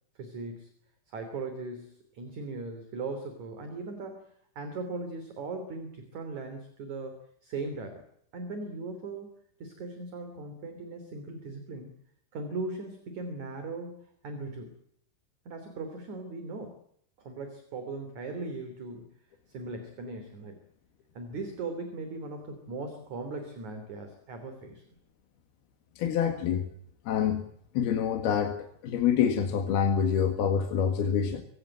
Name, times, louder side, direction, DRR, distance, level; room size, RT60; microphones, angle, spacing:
voice 1, 0.2-0.7 1.1-8.0 8.3-9.3 9.6-11.9 12.3-14.7 15.5-16.8 17.2-19.1 19.5-20.6 21.1-24.8, right 3 dB, 45° right, 7 dB, 4.1 m, -39 dB
voice 2, 26.0-26.6 27.1-27.5 27.8-31.4, left 8 dB, 65° left, 5 dB, 3.4 m, -26 dB
24.5 x 17.5 x 8.9 m, 0.69 s
omnidirectional pair, 5.3 m